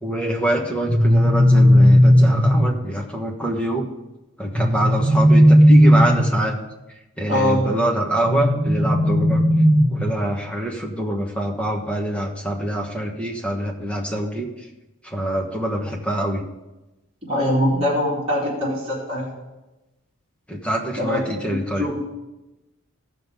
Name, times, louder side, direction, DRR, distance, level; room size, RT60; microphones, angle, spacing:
voice 1, 0.0-3.9 4.4-6.6 7.2-9.4 9.9-14.7 15.0-16.4 20.5-21.9, right 1 dB, 5° left, 0 dB, 1.2 m, -25 dB
sound 1, 0.8-2.8 4.5-6.5 8.2-10.2, equal, 45° right, 1.7 m, -15 dB
voice 2, 7.3-7.7 17.2-19.3 21.0-22.0, left 1 dB, 25° right, -9 dB, 3.9 m, -23 dB
15.5 x 5.9 x 5.2 m, 1.0 s
head